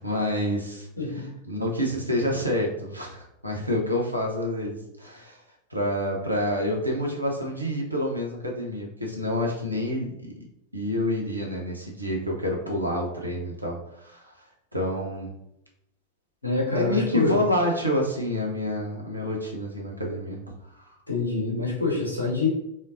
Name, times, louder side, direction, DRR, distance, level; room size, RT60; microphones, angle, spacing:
voice 1, 0.0-5.4 5.7-10.4 10.7-14.3 14.7-15.3 16.7-20.4, left 1 dB, 85° right, -1 dB, 1.0 m, -28 dB
voice 2, 16.4-17.4 21.1-22.5, left 3 dB, 85° left, -4 dB, 1.5 m, -26 dB
4.2 x 3.7 x 2.6 m, 0.83 s
figure-of-eight pair, 90°, 0 cm